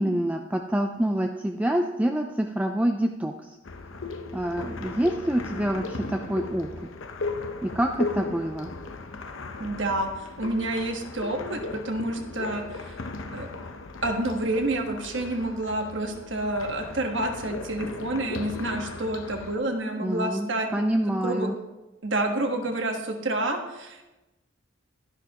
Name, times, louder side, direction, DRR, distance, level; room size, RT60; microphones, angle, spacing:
voice 1, 0.0-3.3 4.3-6.7 7.6-8.7 20.0-21.5, right 1 dB, 5° right, 3 dB, 0.4 m, -26 dB
sound 1, 3.7-19.6, left 3 dB, 75° left, 0.8 m, -37 dB
voice 2, 9.6-12.9 13.3-13.5 14.0-20.7 21.2-21.5 22.0-24.0, right 1 dB, 65° right, 4 dB, 1.3 m, -29 dB
12.5 x 10.5 x 2.9 m, 1.0 s
head